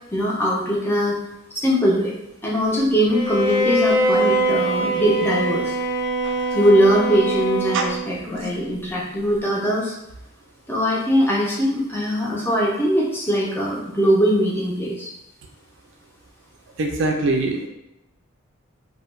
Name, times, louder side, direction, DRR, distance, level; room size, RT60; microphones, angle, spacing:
voice 1, 0.1-1.2 1.5-2.1 2.4-5.7 6.5-10.0 10.7-15.1, equal, 10° left, -4 dB, 0.5 m, -21 dB
Bowed string instrument, 3.1-8.2, right 1 dB, 50° left, 0.9 m, -22 dB
voice 2, 16.8-17.7, right 3 dB, 65° right, 2 dB, 0.4 m, -22 dB
2.2 x 2.1 x 3.1 m, 0.89 s
head